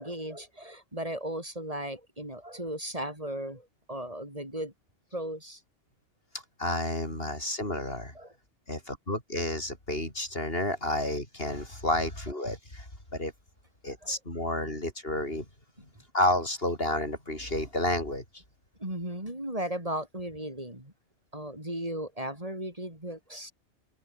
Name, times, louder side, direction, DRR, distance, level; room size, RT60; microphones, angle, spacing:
voice 1, 0.0-4.7 5.1-5.6 8.1-8.3 13.9-14.2 18.8-20.9 21.3-23.5, right 1 dB, 30° right, 7.8 m, -36 dB
voice 2, 6.6-8.1 8.7-12.9 13.1-13.3 13.8-15.4 16.1-18.2, left 1 dB, 55° left, 7.9 m, -30 dB
open air
omnidirectional pair, 1.2 m